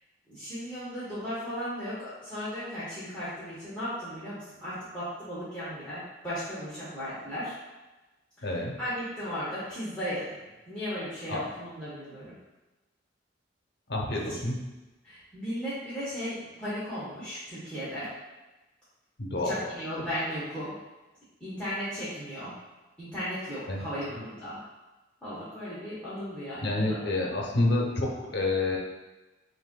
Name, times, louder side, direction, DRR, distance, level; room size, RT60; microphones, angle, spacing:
voice 1, 0.3-7.5 8.4-10.3 10.7-12.3 15.0-18.1 19.3-20.7 21.4-22.5 23.0-24.6 25.2-27.0, equal, 5° left, -13 dB, 1.1 m, -36 dB
voice 2, 8.4-8.7 11.3-11.4 13.9-14.5 19.2-19.6 23.7-23.8 26.6-28.8, left 2 dB, 65° left, -1 dB, 0.8 m, -28 dB
6.5 x 2.6 x 2.2 m, 1.1 s
head